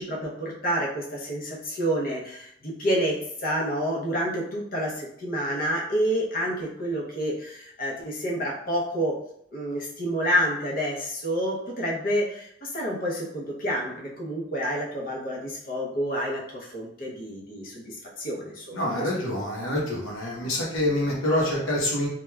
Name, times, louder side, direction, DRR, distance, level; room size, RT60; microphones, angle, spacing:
voice 1, 0.0-9.2 9.5-19.1, equal, 45° left, -3 dB, 0.7 m, -29 dB
voice 2, 18.7-22.1, left 1 dB, 85° left, -3 dB, 0.8 m, -26 dB
3.1 x 2.2 x 2.2 m, 0.74 s
head